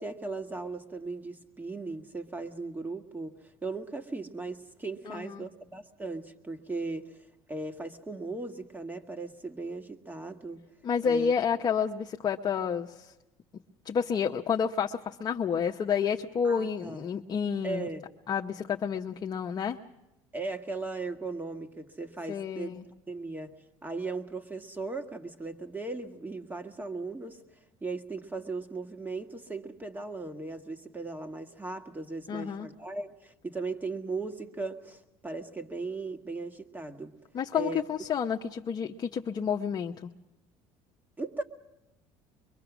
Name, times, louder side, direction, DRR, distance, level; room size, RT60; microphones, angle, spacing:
voice 1, 0.0-10.6 11.0-11.3 16.4-17.1 17.6-18.1 20.3-22.7 23.1-23.5 23.8-27.4 27.8-37.1 37.5-37.9 41.2-41.4, right 3 dB, 15° right, 7 dB, 1.8 m, -37 dB
voice 2, 5.1-5.5 10.8-13.1 13.8-17.9 18.3-19.8 22.3-22.8 32.3-32.7 37.3-40.1, left 7 dB, 40° left, 3 dB, 0.8 m, -30 dB
24.0 x 23.0 x 6.1 m, 0.97 s
supercardioid pair, 100°, 11 cm